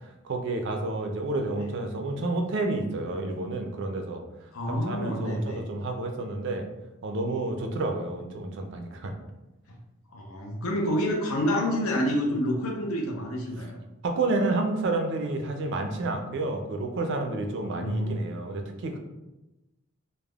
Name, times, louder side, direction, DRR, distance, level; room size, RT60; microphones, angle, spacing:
voice 1, 0.2-4.2 4.9-6.7 7.0-9.1 14.0-19.0, right 2 dB, 55° right, 4 dB, 0.4 m, -30 dB
voice 2, 4.5-5.6 10.1-13.8 17.6-18.3, equal, 80° left, 1 dB, 0.6 m, -28 dB
3.3 x 2.1 x 2.3 m, 1.0 s
head